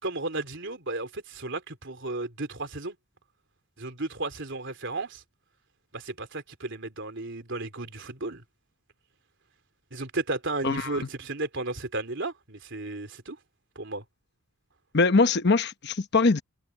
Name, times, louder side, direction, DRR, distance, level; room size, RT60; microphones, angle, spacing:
voice 1, 0.0-3.0 3.8-5.2 5.9-8.4 9.9-13.4 13.8-14.0, right 2 dB, 55° right, 3.5 m, -34 dB
voice 2, 10.6-11.0 14.9-16.4, left 3 dB, 50° left, 0.9 m, -22 dB
head